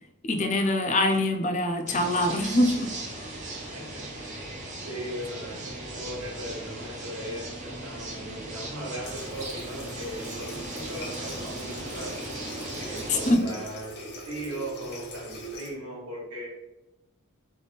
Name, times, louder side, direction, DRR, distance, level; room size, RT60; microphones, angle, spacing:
voice 1, 0.2-2.9 13.1-13.4, left 1 dB, 35° left, 5 dB, 0.5 m, -24 dB
sound 1, 1.9-13.3, right 2 dB, 35° right, 0.9 m, -38 dB
voice 2, 3.7-4.4 4.8-12.2 12.9-16.5, right 1 dB, 75° right, -3 dB, 1.5 m, -38 dB
Water tap faucet, 9.0-15.7, equal, 50° left, 1.2 m, -41 dB
3.4 x 3.4 x 4.0 m, 0.93 s
head